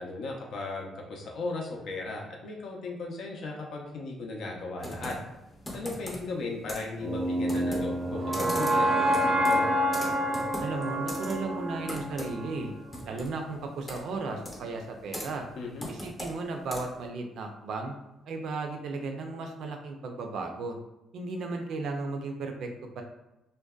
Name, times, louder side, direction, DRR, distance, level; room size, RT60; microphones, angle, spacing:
voice 1, 0.0-5.2 5.7-9.6 15.6-15.9, left 3 dB, 70° left, 0 dB, 0.5 m, -36 dB
Computer keyboard, 4.8-17.1, equal, 25° left, 0.7 m, -41 dB
sound 1, 7.0-13.1, equal, 15° right, 0.5 m, -28 dB
voice 2, 10.6-12.7 13.0-15.5 15.9-17.9 18.3-20.8 21.1-22.7 23.0-23.1, right 3 dB, 70° right, 3 dB, 0.4 m, -35 dB
2.5 x 2.1 x 2.2 m, 0.96 s
cardioid pair, 90°, 0 cm